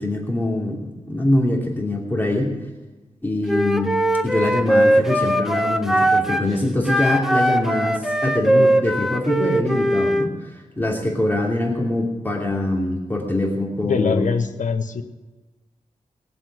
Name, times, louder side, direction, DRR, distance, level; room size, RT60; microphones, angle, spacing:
voice 1, 0.0-2.5 3.2-3.9 4.2-14.2, left 1 dB, 15° left, -2 dB, 2.8 m, -23 dB
Wind instrument woodwind instrument, 3.5-6.5 6.9-10.3, right 1 dB, 5° right, 0.8 m, -20 dB
voice 2, 13.8-15.0, left 5 dB, 85° left, 7 dB, 1.3 m, -23 dB
21.0 x 7.5 x 6.3 m, 1.2 s
wide cardioid pair, 100°, 13 cm